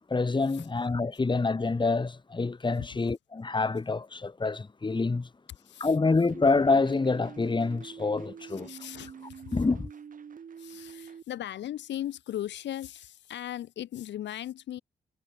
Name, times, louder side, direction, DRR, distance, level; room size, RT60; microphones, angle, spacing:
voice 1, 0.1-5.3 5.8-8.7 9.5-9.9, left 3 dB, 25° left, 1.5 m, -27 dB
voice 2, 5.6-5.9 8.5-9.6 10.6-14.8, left 12 dB, 70° left, 1.1 m, -38 dB
sound 1, 6.0-11.2, right 7 dB, 45° right, 1.1 m, -46 dB
supercardioid pair, 50°, 19 cm